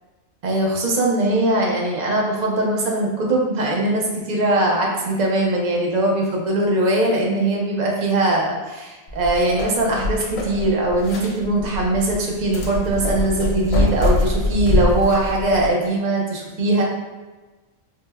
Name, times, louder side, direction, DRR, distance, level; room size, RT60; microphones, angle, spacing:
voice 1, 0.4-16.8, right 1 dB, 50° right, -1 dB, 0.5 m, -21 dB
sound 1, 9.1-15.7, left 2 dB, 80° left, 1.0 m, -24 dB
4.5 x 2.0 x 2.2 m, 1.2 s
omnidirectional pair, 1.4 m